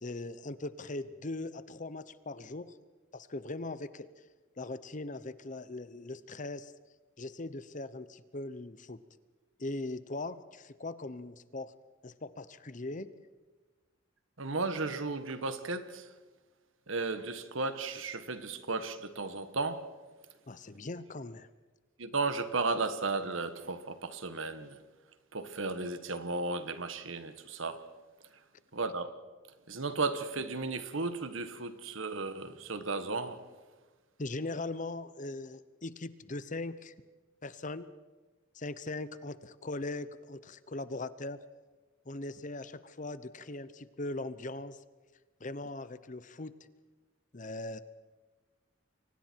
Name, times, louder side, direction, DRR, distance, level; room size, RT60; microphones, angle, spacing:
voice 1, 0.0-2.7 3.1-4.1 4.6-6.7 7.2-9.0 9.6-11.7 12.0-13.1 20.5-21.5 34.2-36.9 37.4-37.9 38.5-41.4 42.1-44.8 45.4-46.7 47.3-47.8, left 2 dB, 40° left, 0.8 m, -40 dB
voice 2, 14.4-16.0 16.9-19.8 22.0-24.8 25.3-27.8 28.7-29.1 29.7-33.4, right 3 dB, 75° right, 1.5 m, -34 dB
29.5 x 24.0 x 4.6 m
head